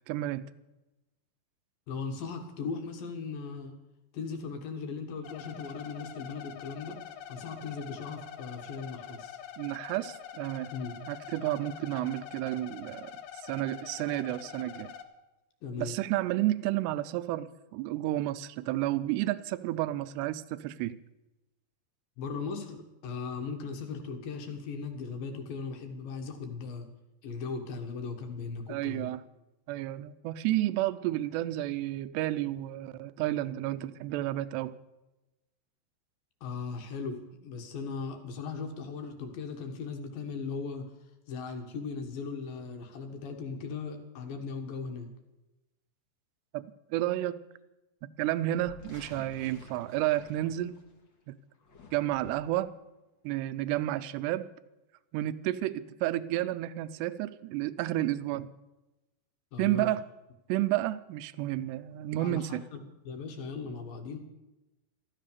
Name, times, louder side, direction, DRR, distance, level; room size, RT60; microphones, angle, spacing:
voice 1, 0.1-0.4 9.6-10.7 11.1-14.9 15.8-21.0 28.7-29.2 29.7-34.7 46.5-47.4 48.2-50.8 51.3-51.4 51.9-52.7 53.2-54.5 55.1-58.5 59.6-60.0 60.5-62.7, right 15 dB, 80° right, 14 dB, 2.8 m, -31 dB
voice 2, 1.9-3.7 4.1-7.0 7.3-9.4 10.7-10.9 11.9-12.0 15.6-16.0 22.2-26.9 27.2-29.1 36.4-40.9 41.3-45.1 59.5-59.9 62.2-64.2, left 5 dB, 65° left, 4 dB, 2.9 m, -38 dB
sound 1, 5.2-15.0, left 9 dB, 85° left, 3.3 m, -45 dB
sound 2, 48.5-51.1 51.5-52.7, left 3 dB, 40° left, 1.9 m, -52 dB
14.0 x 13.0 x 6.7 m, 1.0 s
omnidirectional pair, 4.9 m